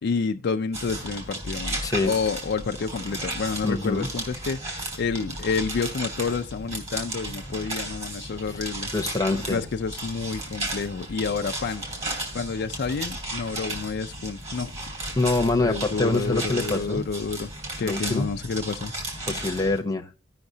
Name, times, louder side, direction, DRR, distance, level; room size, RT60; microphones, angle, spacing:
voice 1, 0.0-8.9 9.3-11.8 12.3-14.7 15.6-17.5 17.8-18.9, left 5 dB, 60° left, 0.4 m, -29 dB
sound 1, 0.7-19.8, right 1 dB, 35° right, 2.8 m, -34 dB
voice 2, 1.8-2.1 3.6-4.1 8.9-9.6 15.1-17.0 17.8-18.3 19.3-20.1, left 2 dB, 20° left, 0.8 m, -25 dB
16.5 x 5.7 x 2.7 m
head